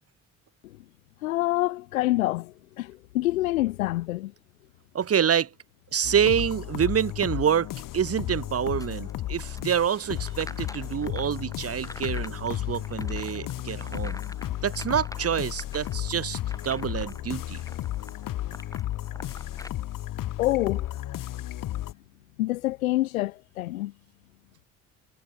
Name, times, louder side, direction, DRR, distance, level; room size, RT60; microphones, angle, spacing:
voice 1, 1.2-4.3 20.4-21.0 22.4-23.9, left 17 dB, 80° left, 0.7 m, -27 dB
voice 2, 4.9-5.5 5.9-7.7 7.9-14.2 14.6-16.4 16.6-17.6, right 8 dB, 35° right, 1.1 m, -27 dB
sound 1, 6.0-21.9, left 14 dB, 50° left, 1.2 m, -34 dB
sound 2, 7.9-16.0, right 22 dB, 75° right, 4.0 m, -54 dB
sound 3, 8.8-19.7, left 1 dB, 10° left, 5.9 m, -47 dB
figure-of-eight pair, 45°, 41 cm